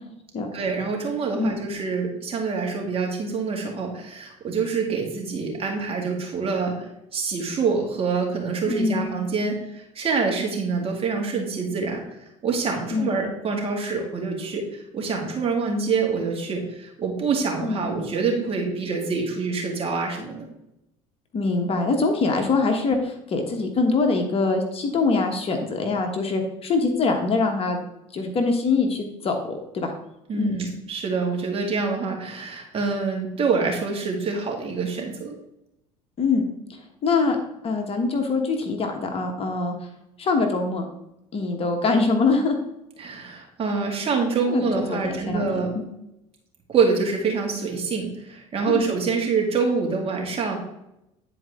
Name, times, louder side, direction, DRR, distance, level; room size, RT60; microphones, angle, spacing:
voice 1, 0.5-6.7 7.1-12.0 12.4-20.5 30.3-35.3 43.0-45.7 46.7-50.6, right 4 dB, 35° right, 0 dB, 2.3 m, -26 dB
voice 2, 8.7-9.1 12.9-13.2 17.6-17.9 21.3-27.8 28.1-29.9 30.4-30.6 36.2-36.4 37.0-37.4 37.6-39.7 40.2-40.9 41.3-42.6 44.5-45.7 48.7-48.8, left 3 dB, 40° left, 4 dB, 1.4 m, -23 dB
9.8 x 4.6 x 3.7 m, 0.86 s
supercardioid pair, 95°, 16 cm